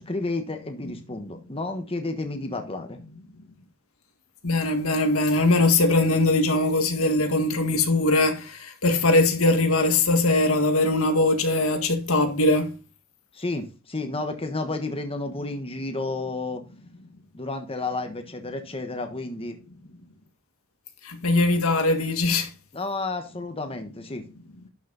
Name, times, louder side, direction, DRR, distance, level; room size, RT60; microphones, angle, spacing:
voice 1, 0.0-3.0 13.3-16.6 17.3-19.6 22.7-24.2, left 2 dB, 25° left, 1.3 m, -31 dB
voice 2, 4.4-12.8 21.0-22.5, left 2 dB, 80° left, 1.9 m, -21 dB
11.5 x 6.4 x 4.0 m
head